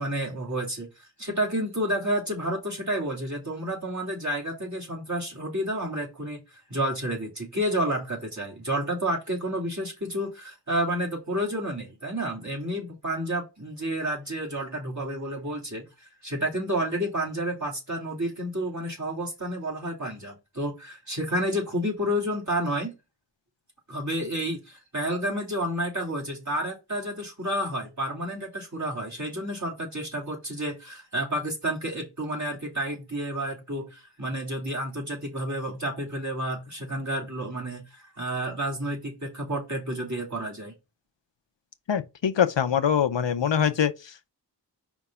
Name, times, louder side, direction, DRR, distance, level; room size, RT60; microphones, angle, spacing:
voice 1, 0.0-22.9 23.9-40.7, right 1 dB, 40° right, 2.8 m, -30 dB
voice 2, 41.9-44.3, left 8 dB, 90° left, 0.7 m, -24 dB
5.1 x 3.6 x 5.5 m
wide cardioid pair, 60°, 42 cm